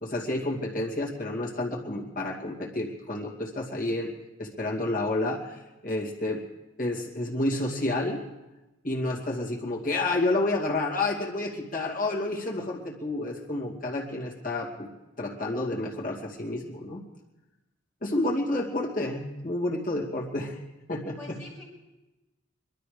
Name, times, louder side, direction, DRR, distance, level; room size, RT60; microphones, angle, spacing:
voice 1, 0.0-4.1 4.4-6.4 6.8-8.2 8.8-14.9 15.2-17.0 18.0-20.6 20.9-21.4, left 2 dB, 45° left, -3 dB, 2.4 m, -30 dB
voice 2, 18.1-18.6 21.2-21.7, left 2 dB, 10° left, -7 dB, 6.7 m, -47 dB
21.5 x 12.5 x 5.1 m, 1.0 s
head